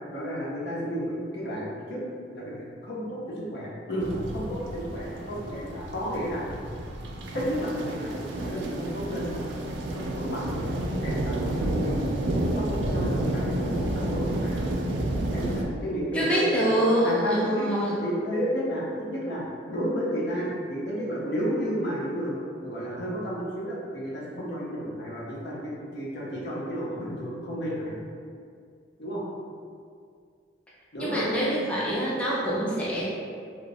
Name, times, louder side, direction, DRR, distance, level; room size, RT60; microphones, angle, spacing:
voice 1, 0.1-2.0 2.3-6.4 7.3-9.5 9.9-10.7 11.0-12.1 12.5-14.6 15.3-16.6 17.0-19.4 19.7-28.0 29.0-29.2 30.9-31.2, equal, 65° left, -6 dB, 0.7 m, -32 dB
sound 1, 4.0-15.6, right 1 dB, 75° right, 0.3 m, -30 dB
voice 2, 16.1-18.0 31.0-33.1, equal, 5° left, -7 dB, 0.4 m, -25 dB
3.0 x 2.1 x 2.6 m, 2.2 s
head